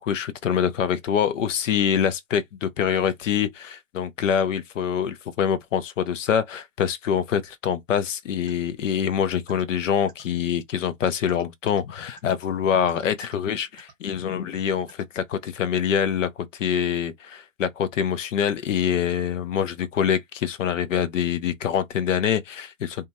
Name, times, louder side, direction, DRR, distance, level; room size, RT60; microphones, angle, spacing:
voice 1, 0.0-23.1, left 8 dB, 65° left, 0.7 m, -25 dB
sound 1, 8.5-8.6 9.5-9.6 10.1-10.2 11.3-11.8 12.2-12.3 12.9-13.3 13.8-13.9 14.9-15.0, right 5 dB, 10° right, 0.8 m, -48 dB
2.7 x 2.4 x 2.7 m
hypercardioid pair, 125°, 41 cm